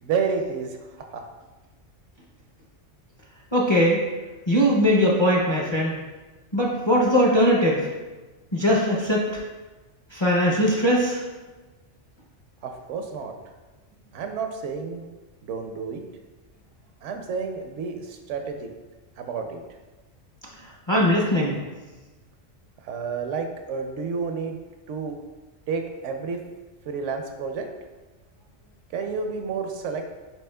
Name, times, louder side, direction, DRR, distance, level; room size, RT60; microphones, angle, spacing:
voice 1, 0.0-0.8 1.1-1.2 12.6-13.3 14.1-15.0 15.4-16.0 17.0-18.7 19.2-19.6 22.8-24.6 24.9-25.2 25.7-26.4 26.9-27.7 28.9-30.1, right 5 dB, 80° right, 5 dB, 0.9 m, -30 dB
voice 2, 3.5-4.0 4.5-6.0 6.5-7.9 8.5-9.3 10.1-11.2 20.9-21.6, equal, 35° left, -4 dB, 0.5 m, -20 dB
7.8 x 2.9 x 2.2 m, 1.2 s
omnidirectional pair, 1.2 m